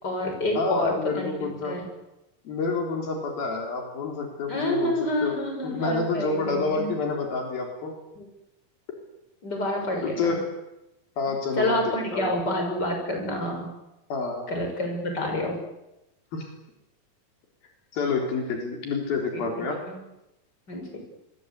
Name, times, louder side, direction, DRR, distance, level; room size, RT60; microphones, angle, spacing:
voice 1, 0.0-1.9 4.5-6.9 8.2-8.3 9.4-10.4 11.6-13.7 14.5-15.6 19.3-19.5 19.9-20.0 20.7-21.0, left 1 dB, 25° left, 3 dB, 6.9 m, -28 dB
voice 2, 0.6-1.8 2.5-4.9 5.2-5.4 5.6-7.9 10.0-10.5 11.2-11.8 12.1-12.3 14.1-14.6 16.3-16.5 17.9-19.8, left 4 dB, 80° left, 2 dB, 5.6 m, -28 dB
25.5 x 22.5 x 8.4 m, 0.93 s
omnidirectional pair, 4.1 m